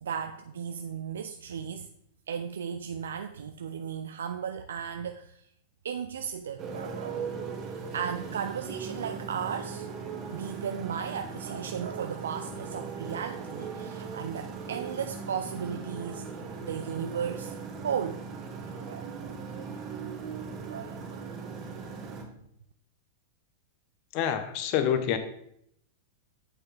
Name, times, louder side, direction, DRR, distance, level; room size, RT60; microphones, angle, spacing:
voice 1, 0.0-1.9 2.3-5.4 5.8-7.6 7.9-9.9 10.3-16.3 16.6-17.6 17.8-18.2 18.9-19.4 20.7-21.3, right 7 dB, 85° right, 0.4 m, -35 dB
Motorcycle, 6.6-22.2, right 5 dB, 35° right, 1.4 m, -39 dB
voice 2, 24.1-25.2, left 9 dB, 50° left, 0.9 m, -27 dB
8.0 x 5.8 x 3.4 m
hypercardioid pair, 120°, 0 cm